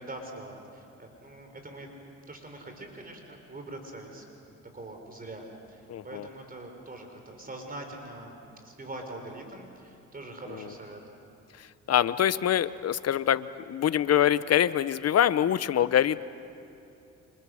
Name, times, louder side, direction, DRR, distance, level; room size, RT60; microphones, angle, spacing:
voice 1, 0.0-1.9 2.3-11.0, right 2 dB, 30° right, 4 dB, 4.3 m, -43 dB
voice 2, 5.9-6.3 10.5-10.7 11.6-16.2, left 10 dB, 55° left, 16 dB, 0.8 m, -25 dB
29.5 x 26.5 x 6.4 m, 2.8 s
cardioid pair, 90°, 30 cm